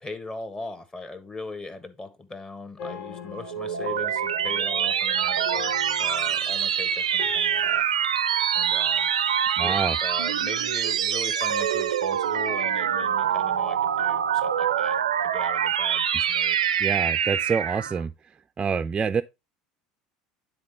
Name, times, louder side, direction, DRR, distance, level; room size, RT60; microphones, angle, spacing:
voice 1, 0.0-7.8 8.5-9.1 9.6-15.0 15.2-16.6, left 3 dB, 20° left, 1.4 m, -39 dB
sound 1, 2.8-7.8, left 5 dB, 65° left, 0.9 m, -40 dB
sound 2, 3.3-18.0, right 9 dB, 90° right, 0.4 m, -25 dB
voice 2, 9.6-10.0 16.8-18.1 18.6-19.2, right 6 dB, 25° right, 0.4 m, -26 dB
9.6 x 3.9 x 3.5 m
hypercardioid pair, 75°, 3 cm